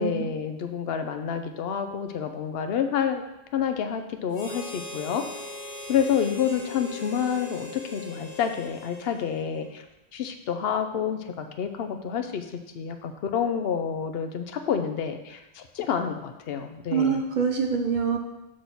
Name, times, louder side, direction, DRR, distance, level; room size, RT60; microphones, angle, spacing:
voice 1, 0.0-3.2 3.5-5.2 5.9-9.8 10.1-12.4 12.7-17.2, left 7 dB, 65° left, 7 dB, 0.9 m, -28 dB
Harmonica, 4.3-9.8, left 3 dB, 50° left, 1.8 m, -40 dB
voice 2, 16.9-18.2, right 6 dB, 50° right, 4 dB, 0.8 m, -25 dB
6.3 x 6.1 x 4.1 m, 0.95 s
omnidirectional pair, 1.1 m